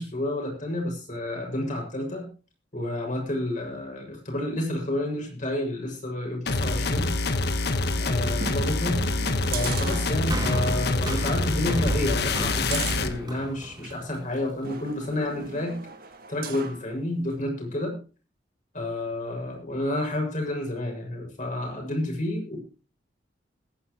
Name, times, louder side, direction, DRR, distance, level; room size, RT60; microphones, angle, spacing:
voice 1, 0.0-2.3 2.7-7.1 7.9-9.0 9.5-15.8 16.3-18.0 18.7-22.6, left 1 dB, 45° left, 1 dB, 6.7 m, -30 dB
sound 1, 6.5-13.2, left 2 dB, 65° left, 1.4 m, -26 dB
sound 2, 8.4-10.6 11.0-11.1 11.5-14.0 14.6-16.8 17.3-17.4, right 5 dB, 55° right, 1.7 m, -38 dB
sound 3, 10.3-14.7 15.4-15.5, right 1 dB, 25° right, 3.5 m, -34 dB
21.5 x 9.9 x 3.2 m, 0.35 s
head